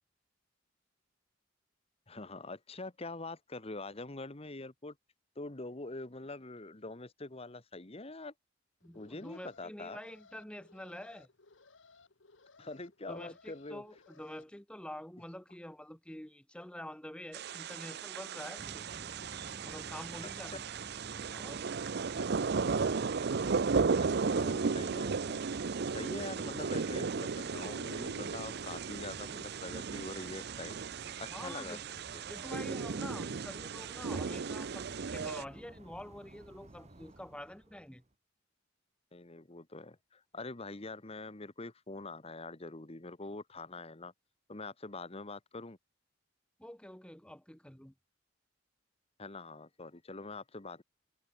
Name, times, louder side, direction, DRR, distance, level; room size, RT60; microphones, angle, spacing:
voice 1, 2.1-4.9 5.3-8.3 8.9-10.0 12.6-13.8 23.6-25.4 25.9-32.2 39.1-44.1 44.5-45.8 49.2-50.8, left 2 dB, 30° left, 1.4 m, -44 dB
Alarm, 8.8-14.4, left 4 dB, 70° left, 1.7 m, -62 dB
voice 2, 8.8-11.3 13.1-18.8 19.6-20.6 21.3-21.6 31.3-31.8 32.3-38.0 46.6-47.9, left 1 dB, 5° left, 1.2 m, -47 dB
sound 1, 17.3-35.4, right 5 dB, 55° right, 0.6 m, -35 dB
sound 2, 18.6-38.0, right 1 dB, 35° right, 1.6 m, -53 dB
head